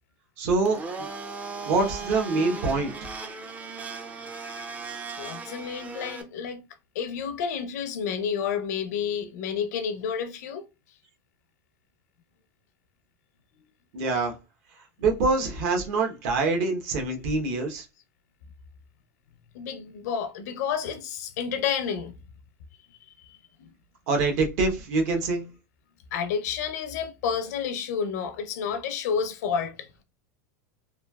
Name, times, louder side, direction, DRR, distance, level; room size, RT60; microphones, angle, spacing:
voice 1, 0.4-1.1 1.7-3.0 13.9-14.3 15.0-17.8 24.1-25.5, right 3 dB, 60° right, 0.9 m, -25 dB
Domestic sounds home sounds, 0.6-6.2, right 4 dB, 15° right, 0.4 m, -37 dB
voice 2, 5.2-6.6 6.9-10.6 15.6-15.7 19.5-22.1 23.2-23.4 26.1-29.9, left 7 dB, 75° left, 0.5 m, -30 dB
3.1 x 2.2 x 2.2 m
supercardioid pair, 135°, 9 cm